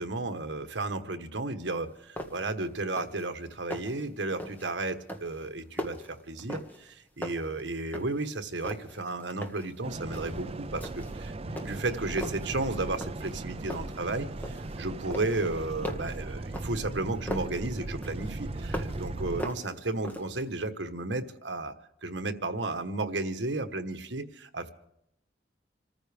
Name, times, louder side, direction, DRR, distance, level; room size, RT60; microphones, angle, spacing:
voice 1, 0.0-21.7 22.0-24.7, right 2 dB, 80° right, 8 dB, 1.3 m, -33 dB
sound 1, 1.7-1.8 2.2-2.6 2.8-3.3 3.5-4.0 4.4-4.7 5.1-6.9 7.2-8.3 8.6-9.7 10.1-10.4 10.8-11.2 11.6-12.5 13.0-13.4 13.7-14.8 15.1-17.6 18.0-19.1 19.4-20.5, equal, 10° left, 1.7 m, -39 dB
sound 2, 9.8-19.4, right 2 dB, 35° right, 0.6 m, -38 dB
27.0 x 14.5 x 3.5 m, 0.76 s
head